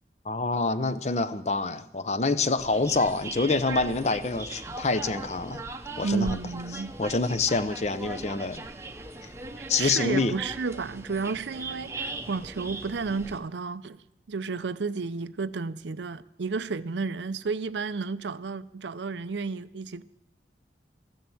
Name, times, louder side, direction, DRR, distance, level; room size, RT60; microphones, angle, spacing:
voice 1, 0.2-5.6 6.0-6.4 7.0-8.6 9.7-10.3, left 3 dB, 35° left, 0.6 m, -26 dB
sound 1, 2.6-13.4, right 2 dB, 15° right, 0.8 m, -39 dB
voice 2, 6.0-6.9 9.6-14.0 14.3-20.0, right 4 dB, 75° right, 0.6 m, -32 dB
14.0 x 10.5 x 7.7 m
head